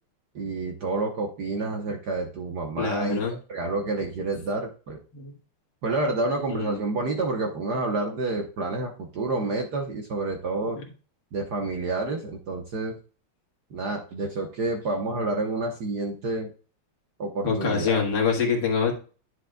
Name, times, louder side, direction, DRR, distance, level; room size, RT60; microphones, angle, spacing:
voice 1, 0.3-3.2 3.5-5.0 5.8-10.8 11.3-13.0 13.7-16.5 17.2-18.0, right 2 dB, 55° right, 2 dB, 1.4 m, -29 dB
voice 2, 2.8-3.4 5.1-5.3 6.5-6.8 10.8-10.9 17.4-18.9, left 5 dB, 55° left, 0 dB, 2.5 m, -25 dB
10.5 x 6.4 x 2.3 m, 0.37 s
omnidirectional pair, 2.4 m